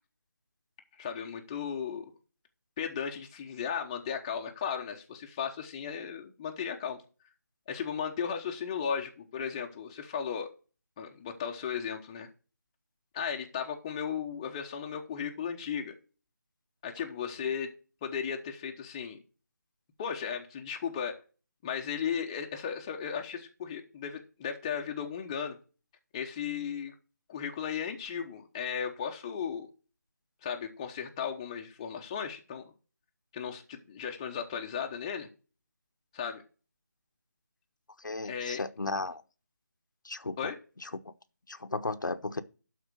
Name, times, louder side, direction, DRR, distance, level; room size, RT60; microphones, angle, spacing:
voice 1, 1.0-2.1 2.8-7.0 7.7-10.5 11.0-12.3 13.1-15.9 16.8-17.7 18.0-19.2 20.0-21.2 21.6-25.6 26.1-26.9 27.3-29.7 30.4-32.6 33.3-35.3 36.1-36.4 38.2-38.6 40.4-40.6, left 7 dB, 15° left, 0.9 m, -35 dB
voice 2, 38.0-39.2 40.0-40.5 40.8-40.9 41.5-42.4, left 3 dB, 85° left, 1.0 m, -35 dB
12.0 x 4.4 x 6.3 m
figure-of-eight pair, 165°, 10 cm